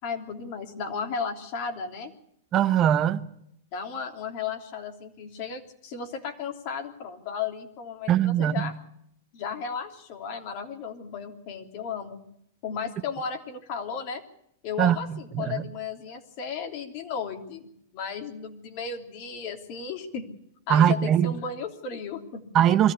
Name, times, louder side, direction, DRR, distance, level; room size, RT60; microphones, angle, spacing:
voice 1, 0.0-2.1 3.7-8.7 9.3-12.2 12.6-14.2 14.6-20.2 20.7-22.4, left 6 dB, 50° left, 3.2 m, -34 dB
voice 2, 2.5-3.2 8.1-8.7 14.8-15.6 20.7-21.3 22.5-22.9, right 10 dB, 30° right, 0.9 m, -21 dB
22.0 x 14.5 x 8.3 m
hypercardioid pair, 120°, 0 cm